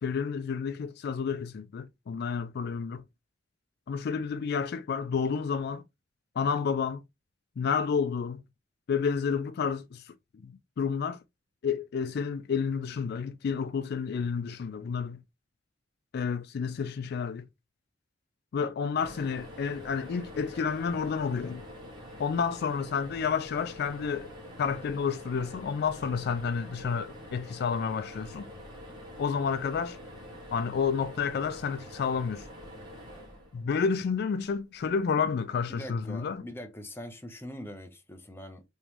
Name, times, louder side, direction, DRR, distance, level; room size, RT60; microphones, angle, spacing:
voice 1, 0.0-3.0 3.9-5.8 6.4-7.0 7.6-8.4 8.9-10.1 10.4-11.2 11.6-15.2 16.1-17.5 18.5-21.6 22.2-28.5 29.2-30.0 30.5-32.5 33.5-36.4, left 6 dB, 60° left, 0.3 m, -30 dB
sound 1, 18.9-34.2 35.9-36.1 36.4-36.5, left 1 dB, 25° right, 1.5 m, -46 dB
voice 2, 35.7-38.6, equal, 15° left, 0.7 m, -42 dB
3.6 x 3.0 x 2.9 m
head